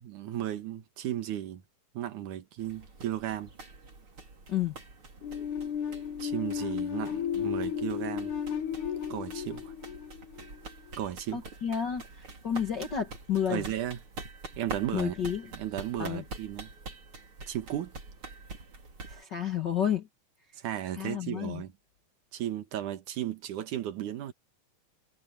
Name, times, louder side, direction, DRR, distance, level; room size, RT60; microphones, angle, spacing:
voice 1, 0.0-1.6 1.9-3.5 6.2-8.3 9.1-9.7 11.0-11.5 13.5-14.0 14.6-15.2 15.5-16.7 17.5-17.9 20.5-21.7 22.3-24.3, right 11 dB, 75° right, 2.9 m, -35 dB
sound 1, 2.6-19.2, right 3 dB, 40° right, 4.8 m, -46 dB
sound 2, 5.2-10.9, left 8 dB, 75° left, 3.0 m, -34 dB
voice 2, 11.3-13.6 14.9-15.5 16.0-16.2 19.1-20.1 21.0-21.6, left 8 dB, 45° left, 1.6 m, -31 dB
omnidirectional pair, 3.6 m